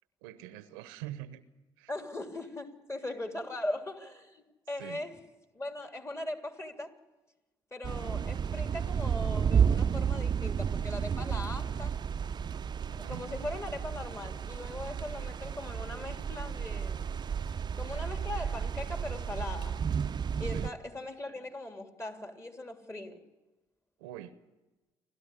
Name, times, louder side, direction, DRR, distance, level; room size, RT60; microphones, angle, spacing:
voice 1, 0.2-1.4 1.8-1.9 4.8-5.0 12.9-13.3 20.5-20.7 24.0-24.4, right 13 dB, 85° right, 0.9 m, -44 dB
voice 2, 1.9-5.2 5.5-7.0 7.7-12.0 12.9-17.1 17.8-19.8 20.4-23.2, left 1 dB, 25° left, 3.2 m, -40 dB
sound 1, 7.8-20.7, right 7 dB, 40° right, 0.7 m, -32 dB
28.5 x 13.0 x 9.9 m
hypercardioid pair, 60°, 12 cm